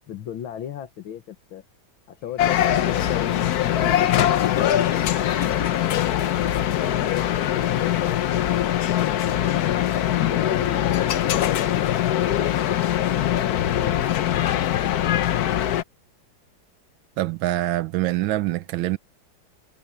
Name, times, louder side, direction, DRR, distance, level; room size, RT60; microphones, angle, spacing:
voice 1, 0.0-1.6 2.1-5.8 6.1-6.7 7.3-9.4 10.0-12.6 13.1-14.7, left 10 dB, 85° left, 2.0 m, -37 dB
sound 1, 2.2-9.3, equal, 5° right, 6.8 m, -52 dB
sound 2, 2.4-15.8, left 11 dB, 60° left, 1.1 m, -22 dB
voice 2, 17.2-19.0, right 16 dB, 80° right, 1.4 m, -24 dB
omnidirectional pair, 2.1 m